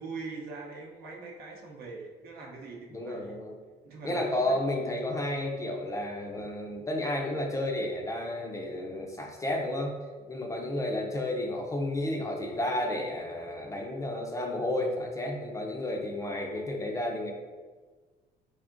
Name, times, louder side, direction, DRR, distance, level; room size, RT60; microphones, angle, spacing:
voice 1, 0.0-3.4 3.8-4.6 4.9-5.0 6.3-6.5, right 4 dB, 65° right, -1 dB, 0.7 m, -42 dB
voice 2, 2.9-3.5 4.0-9.9 10.3-17.3, left 1 dB, 20° left, 1 dB, 0.5 m, -32 dB
3.5 x 3.5 x 2.5 m, 1.4 s
cardioid pair, 110°, 17 cm